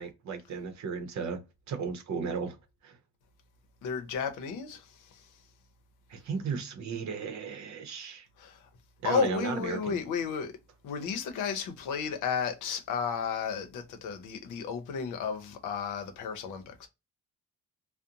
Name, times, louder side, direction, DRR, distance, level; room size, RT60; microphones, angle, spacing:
voice 1, 0.0-2.6 2.8-3.0 6.1-8.3 9.0-10.0, right 5 dB, 65° right, 0.7 m, -35 dB
voice 2, 3.8-4.9 8.4-8.6 9.0-10.5 10.8-16.9, left 6 dB, 85° left, 0.7 m, -33 dB
2.5 x 2.0 x 2.7 m
cardioid pair, 90°, 30 cm